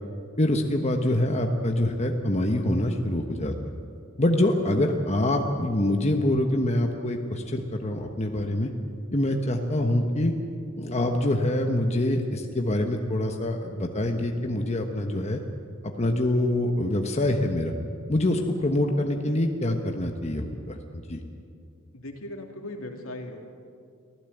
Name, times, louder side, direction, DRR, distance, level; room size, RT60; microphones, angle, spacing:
voice 1, 0.4-3.5 4.2-8.7 9.1-10.3 10.7-15.4 15.8-17.7 18.1-21.2, left 1 dB, 30° left, 3 dB, 1.2 m, -25 dB
voice 2, 21.9-23.4, left 1 dB, 75° left, 2 dB, 2.7 m, -38 dB
24.5 x 15.5 x 8.0 m, 2.4 s
head